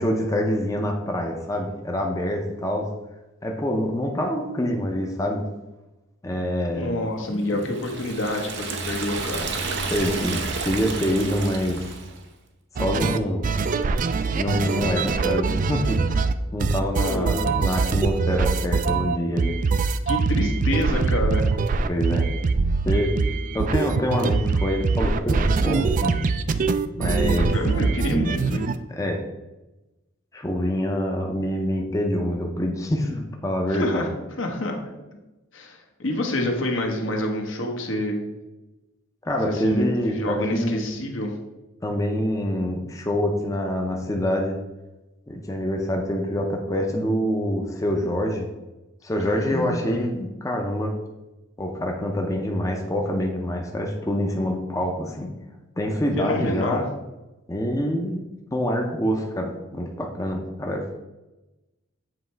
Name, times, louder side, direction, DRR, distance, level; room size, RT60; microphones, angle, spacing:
voice 1, 0.0-2.9 3.4-5.5 6.2-7.0 7.3-7.5 9.9-10.4 10.7-11.8 12.7-13.5 14.3-16.2 16.5-19.6 21.8-22.3 22.8-23.1 23.5-26.2 27.0-27.5 28.9-29.2 30.3-34.1 39.2-40.8 41.8-44.6 45.3-48.5 49.0-50.9 51.6-55.3 55.8-56.9 57.5-58.2 58.5-60.9, equal, 15° left, 1 dB, 0.6 m, -26 dB
voice 2, 6.7-9.6 16.9-17.8 20.1-21.5 27.0-28.7 33.7-34.1 34.4-34.8 35.5-38.2 39.4-41.3 49.2-50.0 56.2-56.9, left 1 dB, 70° left, 2 dB, 1.1 m, -28 dB
Liquid, 7.6-12.2, right 4 dB, 60° right, 0.8 m, -31 dB
sound 1, 12.8-16.3 16.6-28.8, right 4 dB, 40° right, 0.3 m, -23 dB
7.7 x 3.2 x 4.5 m, 1.0 s
head